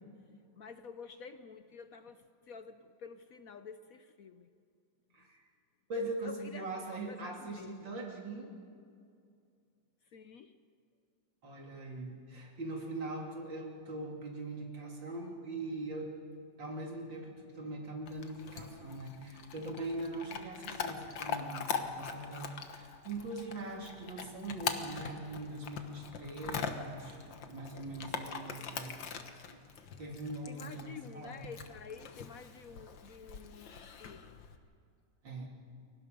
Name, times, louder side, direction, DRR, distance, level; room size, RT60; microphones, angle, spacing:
voice 1, 0.5-4.5 5.9-7.9 10.0-10.6 30.4-34.4, left 6 dB, 60° left, 10 dB, 1.0 m, -50 dB
voice 2, 5.1-5.5 5.9-8.5 11.4-16.1 16.6-27.2 27.5-29.0 29.4-29.7 30.0-31.4 35.2-35.5, right 2 dB, 75° right, 0 dB, 3.6 m, -41 dB
Chewing mastication / Dog, 18.1-34.6, left 6 dB, 75° left, 2.0 m, -42 dB
29.5 x 23.0 x 5.3 m, 2.4 s
omnidirectional pair, 2.0 m